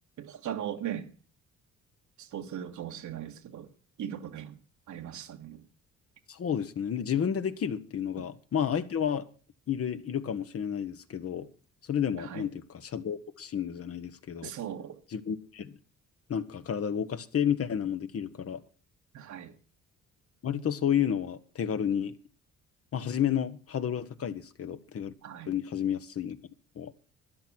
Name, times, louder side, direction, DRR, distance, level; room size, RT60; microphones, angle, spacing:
voice 1, 0.2-1.1 2.2-3.7 4.0-4.6 4.9-5.6 8.2-8.3 12.2-12.5 14.4-15.0 19.1-19.5 25.2-25.5, right 10 dB, 75° right, 1.7 m, -38 dB
voice 2, 6.3-9.3 9.7-11.5 11.9-14.5 15.1-15.7 16.3-18.6 20.4-22.1 22.9-25.1 25.5-26.4 26.8-26.9, left 8 dB, 50° left, 1.2 m, -31 dB
13.0 x 10.5 x 6.2 m
cardioid pair, 90°, 30 cm